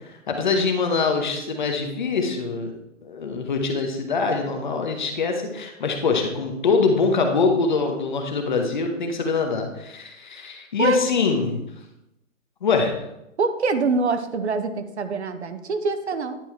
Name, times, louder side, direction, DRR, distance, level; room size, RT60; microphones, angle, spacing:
voice 1, 0.1-2.7 3.0-11.6 12.6-12.9, left 4 dB, 35° left, 4 dB, 0.9 m, -23 dB
voice 2, 13.4-16.4, right 4 dB, 55° right, 9 dB, 0.7 m, -24 dB
10.0 x 3.5 x 4.3 m, 0.87 s
hypercardioid pair, 160°, 40 cm